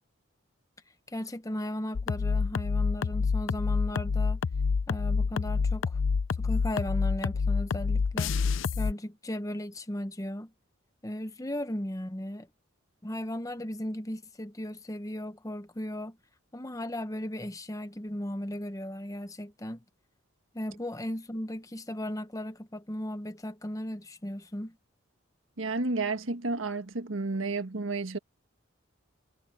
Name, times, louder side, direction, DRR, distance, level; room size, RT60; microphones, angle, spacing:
voice 1, 1.1-4.4 4.9-6.0 6.4-10.5 11.0-12.5 13.0-16.2 16.5-19.8 20.5-24.8, left 1 dB, 15° left, 0.9 m, -36 dB
sound 1, 1.9-8.9, left 5 dB, 70° left, 0.4 m, -28 dB
voice 2, 25.6-28.2, right 3 dB, 75° right, 1.6 m, -31 dB
head